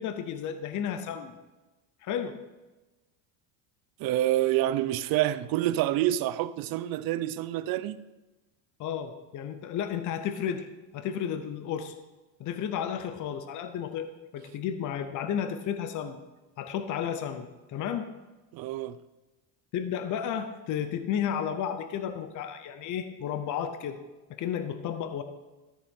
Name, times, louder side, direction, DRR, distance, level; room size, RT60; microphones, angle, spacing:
voice 1, 0.0-1.3 2.0-2.4 8.8-10.7 10.9-11.9 12.4-16.2 16.6-18.1 19.7-24.0 24.3-25.2, left 8 dB, 40° left, 0.7 m, -32 dB
voice 2, 4.0-8.0 18.5-19.0, right 14 dB, 50° right, 0.6 m, -27 dB
13.5 x 6.6 x 3.7 m
supercardioid pair, 120°, 46 cm